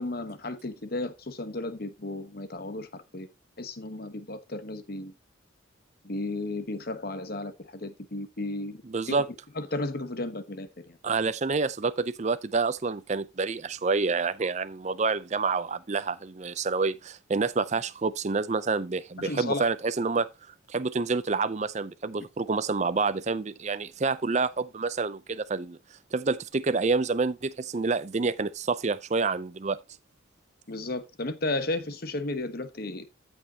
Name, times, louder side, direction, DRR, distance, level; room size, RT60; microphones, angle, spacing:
voice 1, 0.0-3.3 3.6-5.1 6.0-8.8 9.1-9.2 9.6-11.0 19.2-19.7 30.7-33.1, left 2 dB, 50° left, 1.1 m, -34 dB
voice 2, 8.8-9.2 11.0-20.3 20.7-25.8 26.1-29.8, right 4 dB, 35° right, 0.5 m, -28 dB
15.0 x 5.3 x 2.8 m
head